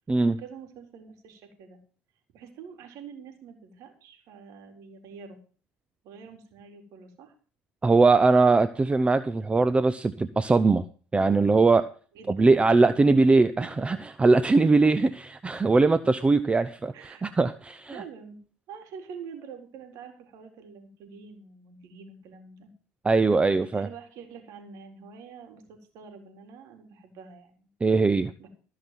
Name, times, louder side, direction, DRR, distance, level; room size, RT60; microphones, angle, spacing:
voice 1, 0.4-1.8 2.3-5.4 6.0-7.3 12.1-13.8 14.7-15.0 16.9-17.4 17.9-18.4 18.7-22.7 23.7-27.7 28.4-28.5, right 6 dB, 70° right, 4 dB, 4.1 m, -46 dB
voice 2, 7.8-10.8 11.1-11.9 12.3-17.9 23.0-23.9 27.8-28.3, right 3 dB, 20° right, 14 dB, 0.7 m, -21 dB
15.5 x 5.9 x 7.7 m, 0.40 s
supercardioid pair, 85°, 6 cm